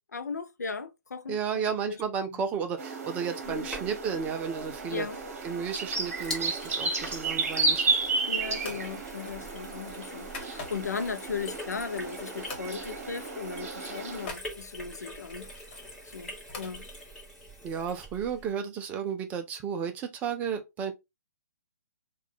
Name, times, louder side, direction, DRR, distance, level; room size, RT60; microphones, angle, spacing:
voice 1, 0.1-1.4 1.9-2.0 2.3-2.4 3.5-3.7 4.9-5.2 8.2-15.5 16.0-16.9, left 5 dB, 65° left, 0.6 m, -37 dB
voice 2, 1.3-5.1 5.4-7.9 17.6-20.9, right 7 dB, 15° right, 0.5 m, -33 dB
sound 1, 2.8-14.3, right 3 dB, 50° right, 1.1 m, -33 dB
Sink (filling or washing), 3.4-18.5, equal, 5° left, 1.3 m, -45 dB
sound 2, 7.8-8.1 8.6-8.9 9.3-11.0 11.5-12.2 12.5-12.7 13.0-13.2 13.4-14.5 15.3-16.8, left 3 dB, 35° left, 1.5 m, -44 dB
4.4 x 2.4 x 3.7 m
figure-of-eight pair, 130°, 10 cm